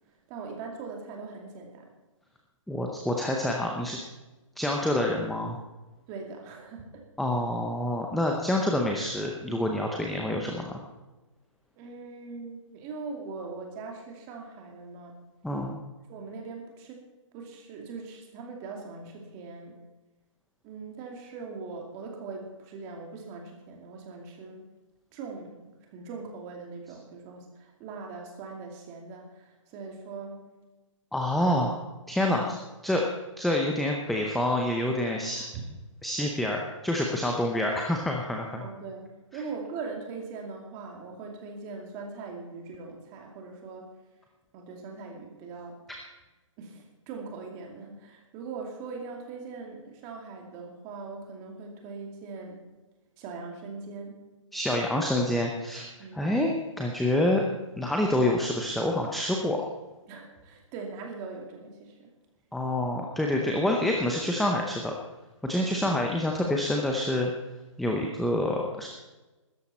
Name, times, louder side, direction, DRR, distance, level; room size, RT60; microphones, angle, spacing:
voice 1, 0.3-1.9 6.1-7.1 11.8-15.2 16.1-17.0 17.3-19.8 20.6-24.6 25.1-30.5 35.3-35.6 36.2-36.5 38.6-43.9 44.5-45.8 46.6-52.6 53.2-54.2 56.0-56.3 60.1-62.1, right 4 dB, 20° right, 1 dB, 2.5 m, -41 dB
voice 2, 2.7-4.0 4.6-5.6 7.2-10.8 15.4-15.8 31.1-31.8 32.1-32.6 32.8-33.1 33.4-35.4 36.0-36.6 36.8-38.6 54.5-55.8 56.1-57.4 57.8-59.7 62.5-64.9 65.4-67.3 67.8-68.9, left 1 dB, ahead, 0 dB, 0.6 m, -27 dB
16.0 x 13.5 x 4.3 m, 1.1 s
hypercardioid pair, 160°, 17 cm